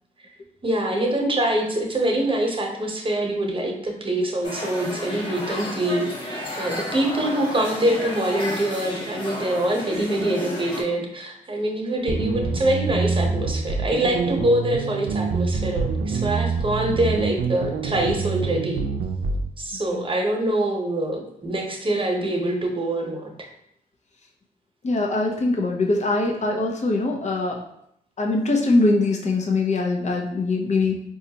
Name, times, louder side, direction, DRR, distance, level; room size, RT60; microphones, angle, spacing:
voice 1, 0.6-18.8 19.6-23.3, right 1 dB, 30° right, 1 dB, 1.0 m, -24 dB
sound 1, 4.4-10.8, left 1 dB, 30° left, 1.2 m, -32 dB
sound 2, 12.1-19.5, right 5 dB, 70° right, 0.4 m, -26 dB
voice 2, 24.8-27.6 28.2-31.0, left 2 dB, 45° left, 0 dB, 0.8 m, -22 dB
4.1 x 2.4 x 2.9 m, 0.75 s
supercardioid pair, 50°, 16 cm